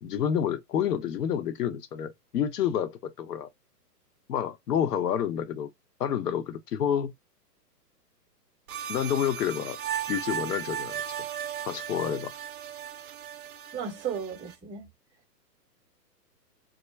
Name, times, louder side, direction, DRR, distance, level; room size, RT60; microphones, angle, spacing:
voice 1, 0.0-3.5 4.3-5.7 6.0-7.1 8.9-9.8 10.1-11.0 11.7-12.3, left 9 dB, 70° left, 0.8 m, -29 dB
sound 1, 8.7-14.5, right 9 dB, 60° right, 0.5 m, -36 dB
voice 2, 13.7-14.9, right 7 dB, 5° right, 0.5 m, -34 dB
2.4 x 2.1 x 3.2 m
hypercardioid pair, 135°, 49 cm